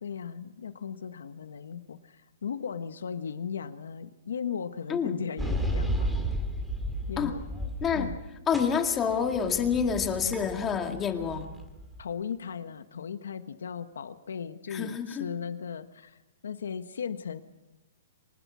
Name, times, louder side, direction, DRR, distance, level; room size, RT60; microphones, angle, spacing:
voice 1, 0.0-6.1 7.1-7.6 7.9-8.2 12.0-17.4, left 7 dB, 85° left, 9 dB, 1.3 m, -37 dB
sound 1, 5.4-8.2 8.5-12.0, equal, 5° right, 2.2 m, -33 dB
voice 2, 8.5-11.5 14.7-15.3, left 7 dB, 15° left, 5 dB, 2.0 m, -28 dB
24.5 x 20.0 x 6.3 m, 1.0 s
hypercardioid pair, 160°, 0 cm